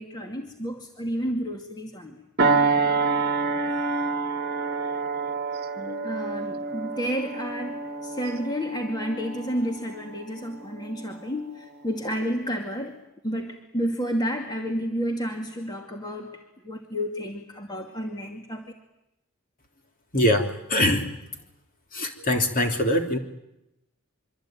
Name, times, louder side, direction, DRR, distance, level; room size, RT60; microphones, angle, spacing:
voice 1, 0.0-2.2 5.8-12.9 13.2-16.4 16.6-18.7, equal, 20° left, 2 dB, 2.4 m, -31 dB
sound 1, 2.4-11.2 11.7-11.9, right 4 dB, 45° right, 1.5 m, -28 dB
voice 2, 20.1-21.1 21.9-23.2, left 1 dB, 40° left, 3 dB, 3.3 m, -23 dB
25.0 x 25.0 x 9.3 m, 0.89 s
head